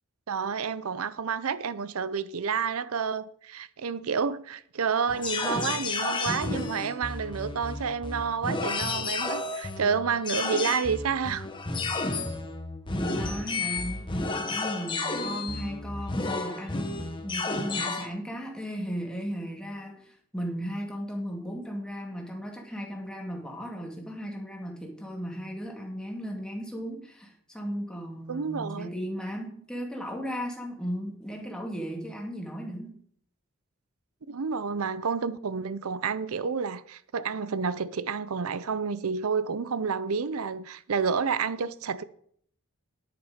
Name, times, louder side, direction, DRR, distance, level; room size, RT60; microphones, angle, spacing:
voice 1, 0.3-11.5 28.3-28.9 34.3-42.0, right 6 dB, 90° right, 0.6 m, -29 dB
sound 1, 5.1-18.1, left 3 dB, 20° left, 1.2 m, -32 dB
voice 2, 12.9-14.1 14.4-33.0, equal, 5° left, 2.2 m, -36 dB
10.5 x 9.1 x 5.0 m
head